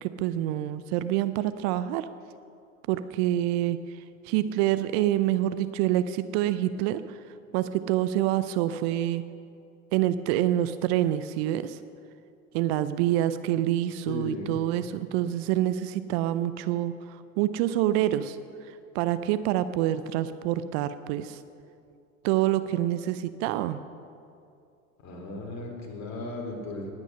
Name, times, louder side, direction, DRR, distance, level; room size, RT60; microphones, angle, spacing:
voice 1, 0.0-2.1 2.9-3.8 4.3-7.2 7.5-9.2 9.9-11.8 12.5-18.4 18.9-21.4 22.2-23.8, right 13 dB, 50° right, 13 dB, 0.6 m, -26 dB
voice 2, 14.1-14.6 25.0-26.9, left 2 dB, 40° left, 1 dB, 3.3 m, -36 dB
19.5 x 9.0 x 5.5 m, 2.5 s
figure-of-eight pair, 80°, 41 cm